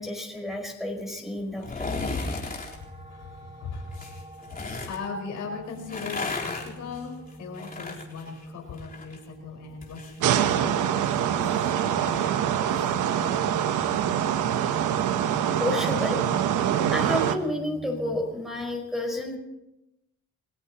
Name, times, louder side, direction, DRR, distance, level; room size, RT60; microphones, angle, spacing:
voice 1, 0.0-2.1 11.8-11.9 14.6-14.8 15.6-16.2 16.9-19.4, left 1 dB, ahead, 1 dB, 5.3 m, -31 dB
sound 1, 1.6-2.8 3.9-5.0 5.7-9.2 9.5-12.9 13.3-13.4, left 3 dB, 30° left, 3.9 m, -36 dB
sound 2, 2.2-18.2, right 1 dB, 20° right, 1.7 m, -43 dB
voice 2, 3.0-13.6, left 5 dB, 80° left, 0 dB, 5.0 m, -39 dB
sound 3, 10.2-17.4, right 10 dB, 80° right, 1.0 m, -25 dB
28.0 x 17.0 x 3.0 m, 0.89 s
cardioid pair, 90°, 30 cm